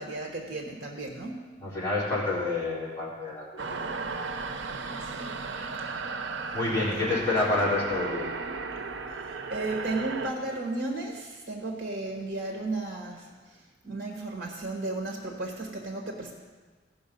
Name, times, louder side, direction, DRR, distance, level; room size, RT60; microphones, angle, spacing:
voice 1, 0.0-1.4 5.0-5.3 6.6-7.1 9.2-16.3, right 2 dB, 55° right, 0 dB, 1.2 m, -34 dB
voice 2, 1.6-3.9 6.5-8.3, left 2 dB, 15° left, -9 dB, 3.7 m, -28 dB
sound 1, 3.6-10.3, right 4 dB, 85° right, 0.6 m, -35 dB
16.0 x 5.8 x 5.3 m, 1.4 s
head